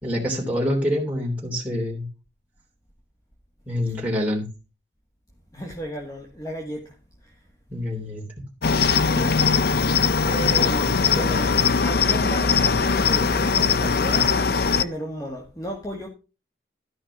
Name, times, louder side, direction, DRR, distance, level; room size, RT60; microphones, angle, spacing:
voice 1, 0.0-2.0 3.7-4.5 7.7-8.2, left 1 dB, 10° right, 3.2 m, -26 dB
voice 2, 5.5-7.4 8.9-14.3 14.8-16.1, equal, 20° left, 1.7 m, -34 dB
Cricket, 8.6-14.8, left 5 dB, 55° left, 0.6 m, -20 dB
13.0 x 5.8 x 6.1 m
head